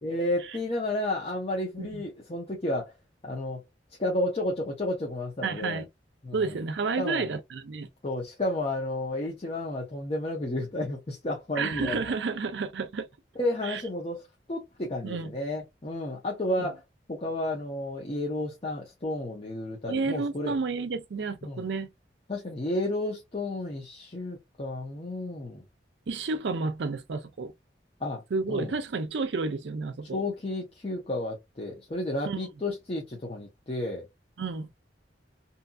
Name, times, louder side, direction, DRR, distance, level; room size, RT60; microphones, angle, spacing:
voice 1, 0.0-2.9 3.2-3.6 4.0-5.8 6.2-6.6 7.0-7.3 8.0-12.0 13.4-16.8 17.1-20.5 21.4-21.7 22.3-25.6 28.0-28.2 28.5-28.7 30.1-34.1, left 1 dB, 35° left, 0.7 m, -32 dB
voice 2, 5.4-5.9 6.3-7.9 11.6-13.1 13.7-13.8 15.0-15.3 16.6-16.7 19.9-21.9 26.1-27.5 28.3-30.2 32.3-32.4 34.4-34.7, right 4 dB, 70° right, 0.5 m, -31 dB
2.7 x 2.6 x 2.3 m
head